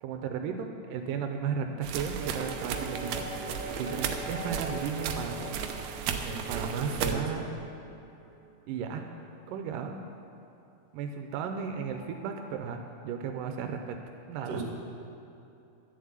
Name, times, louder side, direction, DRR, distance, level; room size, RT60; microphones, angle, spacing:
voice 1, 0.0-3.3 3.8-5.6 6.5-7.5 8.7-9.1 9.5-10.0 10.9-14.0 14.3-14.6, right 6 dB, 90° right, 5 dB, 2.4 m, -35 dB
sound 1, 1.8-7.1, right 7 dB, 70° right, 1.8 m, -35 dB
sound 2, 2.2-9.0 11.3-12.5, right 1 dB, 5° right, 2.2 m, -42 dB
voice 2, 6.2-7.2 14.5-14.6, right 4 dB, 55° right, -1 dB, 2.9 m, -36 dB
12.0 x 7.5 x 8.7 m, 2.8 s
omnidirectional pair, 3.8 m